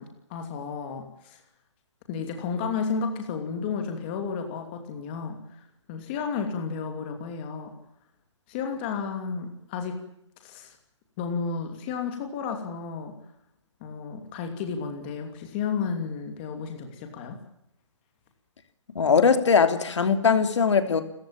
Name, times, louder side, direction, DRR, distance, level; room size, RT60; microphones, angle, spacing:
voice 1, 0.0-1.4 2.1-7.7 8.5-10.0 10.4-10.8 11.2-13.1 13.8-17.4, left 5 dB, 20° left, 5 dB, 2.7 m, -32 dB
voice 2, 18.9-21.0, left 6 dB, 65° left, 8 dB, 3.3 m, -20 dB
28.5 x 15.0 x 8.9 m, 0.78 s
hypercardioid pair, 170°, 16 cm